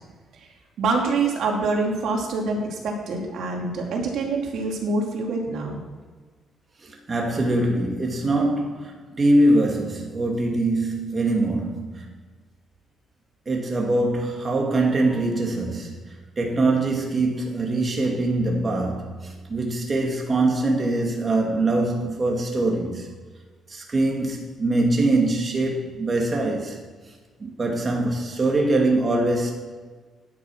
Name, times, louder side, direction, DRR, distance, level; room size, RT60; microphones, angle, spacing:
voice 1, 0.8-5.8, right 3 dB, 75° right, 0 dB, 2.6 m, -25 dB
voice 2, 6.8-12.1 13.5-23.1 23.7-26.8 27.4-29.5, right 2 dB, 35° right, 0 dB, 2.1 m, -23 dB
10.5 x 8.1 x 6.1 m, 1.4 s
cardioid pair, 90°, 0 cm